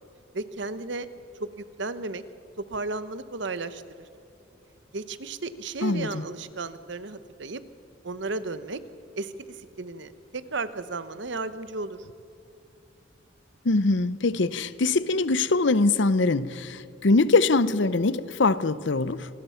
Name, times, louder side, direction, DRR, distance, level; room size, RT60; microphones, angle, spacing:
voice 1, 0.3-1.1 1.4-1.5 1.8-2.2 2.6-4.1 4.9-7.6 8.0-8.8 9.2-12.1, right 3 dB, 65° right, 1.0 m, -34 dB
voice 2, 5.8-6.2 13.6-19.3, left 3 dB, 65° left, 0.7 m, -23 dB
26.5 x 20.0 x 5.7 m
head